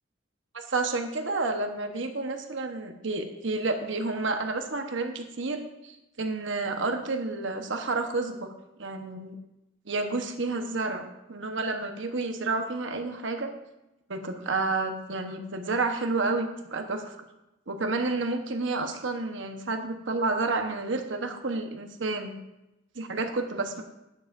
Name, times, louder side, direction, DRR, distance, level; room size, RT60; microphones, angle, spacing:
voice 1, 0.5-8.5 8.8-9.4 9.9-13.5 14.1-17.2 17.7-22.3 22.9-23.8, right 3 dB, 70° right, 5 dB, 1.1 m, -30 dB
13.0 x 9.9 x 2.6 m, 0.94 s
head